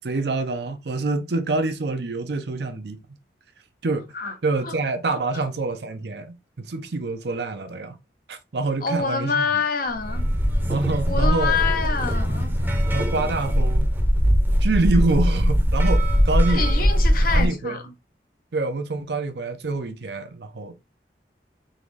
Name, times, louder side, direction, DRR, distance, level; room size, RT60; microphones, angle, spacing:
voice 1, 0.0-3.0 3.8-4.1 4.4-8.0 8.3-9.5 10.7-11.6 12.9-13.9 14.6-17.8 18.5-20.7, right 3 dB, 65° right, 0.6 m, -26 dB
voice 2, 8.8-10.2 11.1-12.5 16.5-17.8, left 5 dB, 55° left, 0.8 m, -26 dB
sound 1, 10.0-17.5, equal, 10° right, 0.8 m, -21 dB
3.8 x 3.1 x 3.2 m
head